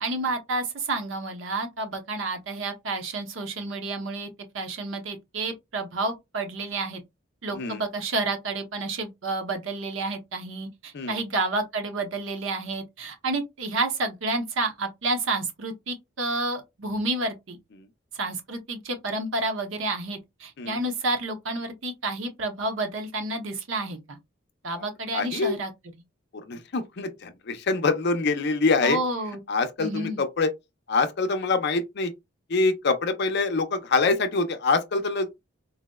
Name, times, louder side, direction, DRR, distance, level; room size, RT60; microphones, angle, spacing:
voice 1, 0.0-4.3 4.5-7.0 7.4-17.6 18.1-24.2 24.6-25.7 28.8-29.4 29.8-30.2, right 2 dB, 75° right, 0.8 m, -30 dB
voice 2, 25.1-25.6 26.5-29.0 29.5-30.5 30.9-32.1 32.5-35.3, left 3 dB, 55° left, 0.5 m, -25 dB
3.9 x 2.0 x 2.2 m
head